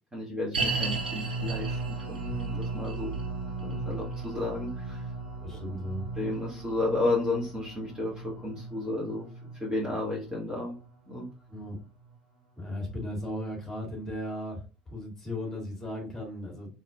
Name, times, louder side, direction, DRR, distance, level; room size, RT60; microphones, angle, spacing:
voice 1, 0.1-1.8 2.1-3.1 3.6-5.0 6.2-9.3 9.6-10.8 11.1-11.3, left 2 dB, 15° right, -4 dB, 1.9 m, -32 dB
sound 1, 0.5-11.8 12.1-12.2 12.8-12.9, right 3 dB, 85° right, 0.8 m, -35 dB
voice 2, 5.4-6.1 11.5-11.8 12.6-14.6 14.9-16.8, left 1 dB, 10° left, -2 dB, 2.4 m, -36 dB
4.2 x 3.8 x 2.5 m, 0.32 s
figure-of-eight pair, 65°, 5 cm